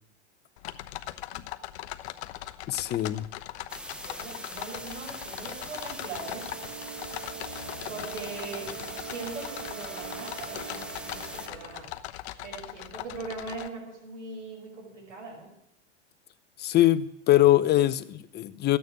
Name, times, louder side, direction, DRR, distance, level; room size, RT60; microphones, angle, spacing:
sound 1, 0.6-13.7, left 14 dB, 65° left, 1.0 m, -40 dB
voice 1, 1.0-1.5 4.0-6.5 7.9-11.9 12.4-15.5, right 4 dB, 85° right, -2 dB, 5.5 m, -41 dB
voice 2, 2.7-3.3 16.6-18.8, left 14 dB, 30° left, 15 dB, 0.8 m, -22 dB
sound 2, 3.7-11.5, equal, 5° right, 1.2 m, -42 dB
sound 3, 6.2-12.0, right 10 dB, 60° right, 2.1 m, -43 dB
14.0 x 9.4 x 9.8 m, 0.74 s
hypercardioid pair, 120°, 35 cm